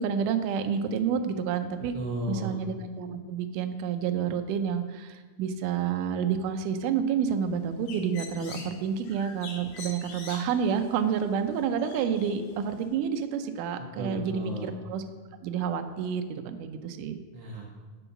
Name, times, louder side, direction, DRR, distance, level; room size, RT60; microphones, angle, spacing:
voice 1, 0.0-1.9 2.3-15.0 15.4-17.2, right 7 dB, 80° right, 7 dB, 2.0 m, -29 dB
voice 2, 1.9-2.6 13.9-14.8 17.3-17.7, right 1 dB, 60° right, -2 dB, 1.7 m, -34 dB
Bird, 7.5-12.9, left 4 dB, 80° left, 3.0 m, -46 dB
8.2 x 5.4 x 5.8 m, 1.4 s
omnidirectional pair, 4.1 m